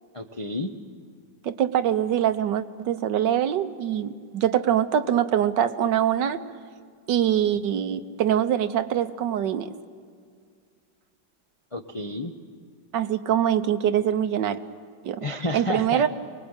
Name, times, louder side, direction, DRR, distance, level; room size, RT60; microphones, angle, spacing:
voice 1, 0.1-0.7 11.7-12.3 15.2-16.0, left 1 dB, 30° left, 5 dB, 0.5 m, -30 dB
voice 2, 1.4-6.4 7.1-9.7 12.9-14.6 15.0-15.2 15.5-16.1, right 10 dB, 80° right, 9 dB, 1.5 m, -24 dB
24.5 x 19.5 x 8.9 m, 2.1 s
omnidirectional pair, 1.9 m